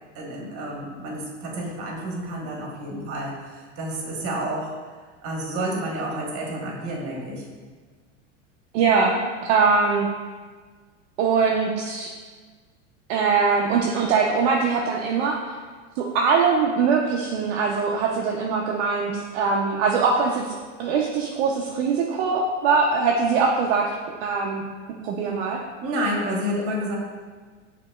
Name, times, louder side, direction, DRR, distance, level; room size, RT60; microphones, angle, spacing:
voice 1, 0.1-4.7 5.2-7.4 25.8-27.0, right 1 dB, 35° right, -2 dB, 1.2 m, -29 dB
voice 2, 8.7-9.2 9.5-10.1 11.2-12.1 13.1-15.4 16.0-23.8 24.2-24.6 25.0-25.6, right 5 dB, 60° right, -1 dB, 0.6 m, -22 dB
6.6 x 2.9 x 2.3 m, 1.5 s
supercardioid pair, 120°, 37 cm